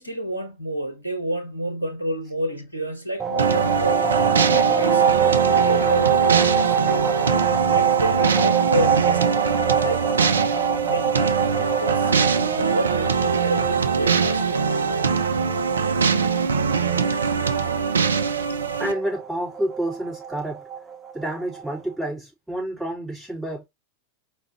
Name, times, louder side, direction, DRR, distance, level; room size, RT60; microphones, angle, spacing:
voice 1, 0.0-4.1 4.5-5.1 5.4-7.1 7.6-9.4 9.8-10.1 10.8-14.7 16.3-16.5, right 1 dB, 85° left, 1.3 m, -29 dB
sound 1, 3.2-21.8, right 7 dB, 20° right, 0.7 m, -25 dB
sound 2, 3.4-18.9, right 5 dB, 70° right, 0.5 m, -23 dB
voice 2, 18.8-20.6 21.1-23.7, right 1 dB, 5° right, 3.6 m, -29 dB
4.9 x 3.1 x 3.0 m
figure-of-eight pair, 90°, 0 cm